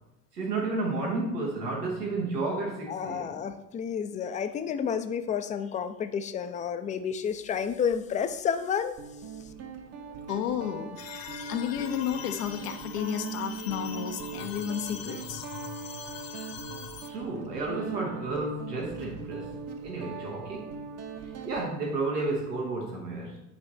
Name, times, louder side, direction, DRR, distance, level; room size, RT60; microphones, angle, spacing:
voice 1, 0.3-3.4 17.1-20.8 21.4-23.4, right 3 dB, 90° right, -2 dB, 1.1 m, -32 dB
voice 2, 2.9-9.0, left 7 dB, 20° left, 9 dB, 0.3 m, -30 dB
Guitar, 7.7-8.0 9.0-21.6, right 6 dB, 35° right, 0.7 m, -41 dB
voice 3, 10.3-11.0 11.5-15.5, left 9 dB, 75° left, 5 dB, 0.6 m, -32 dB
sound 1, 11.0-17.1, left 8 dB, 45° left, 0.9 m, -42 dB
8.8 x 3.1 x 4.1 m, 0.92 s
hypercardioid pair, 65°, 46 cm